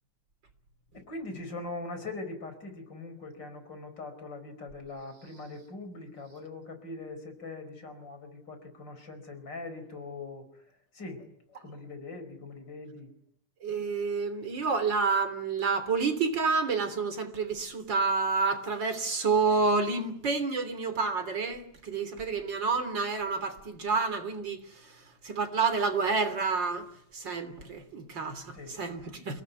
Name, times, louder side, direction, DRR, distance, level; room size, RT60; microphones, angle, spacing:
voice 1, 1.1-10.4 10.9-13.1 28.5-28.8, left 3 dB, 65° left, 5.4 m, -41 dB
voice 2, 13.6-24.6 25.2-26.9 27.1-29.4, right 4 dB, 70° right, 3.9 m, -29 dB
28.5 x 18.0 x 9.5 m
omnidirectional pair, 2.1 m